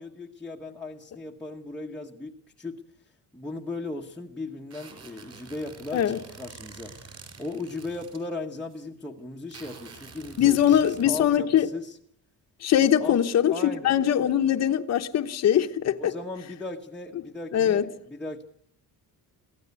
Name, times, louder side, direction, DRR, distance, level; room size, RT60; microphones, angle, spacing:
voice 1, 0.0-2.8 3.3-12.0 13.0-14.0 16.0-18.4, left 2 dB, 5° left, 1.1 m, -37 dB
sound 1, 4.7-8.2 8.7-8.8 9.5-11.0, right 5 dB, 45° right, 5.5 m, -47 dB
voice 2, 10.4-11.7 12.6-16.1 17.5-17.8, left 10 dB, 45° left, 1.0 m, -22 dB
23.0 x 16.0 x 8.2 m
cardioid pair, 175°, 37 cm